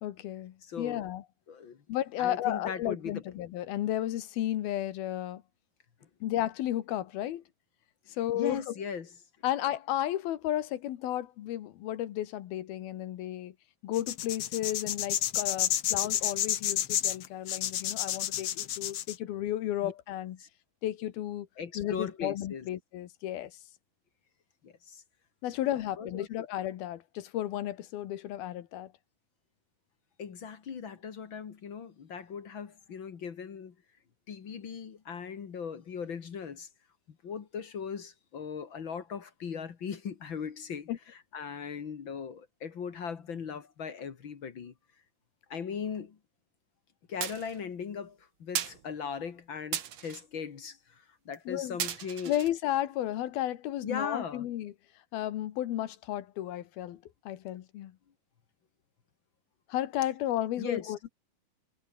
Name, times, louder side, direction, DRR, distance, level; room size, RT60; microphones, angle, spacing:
voice 1, 0.0-1.2 1.9-5.4 6.2-7.4 8.1-8.7 9.4-13.5 13.8-20.4 20.8-21.5 21.8-23.6 25.4-28.9 40.9-41.0 51.5-51.8 52.3-54.7 55.1-58.0 59.7-61.1, left 13 dB, 80° left, 3.3 m, -33 dB
voice 2, 0.7-1.0 1.5-1.8 2.2-3.2 8.3-9.1 19.8-19.9 20.4-20.5 21.6-22.7 24.6-25.0 26.0-26.5 30.2-33.7 34.3-36.7 37.2-40.9 41.3-44.7 45.5-46.2 47.1-52.3 53.8-54.5 60.6-60.9, left 6 dB, 45° left, 1.8 m, -38 dB
sound 1, 13.9-19.1, left 12 dB, 65° left, 1.6 m, -30 dB
sound 2, 47.2-47.6 48.6-48.8 49.7-50.2 51.3-51.4 51.8-52.5, right 9 dB, 55° right, 2.6 m, -35 dB
omnidirectional pair, 4.3 m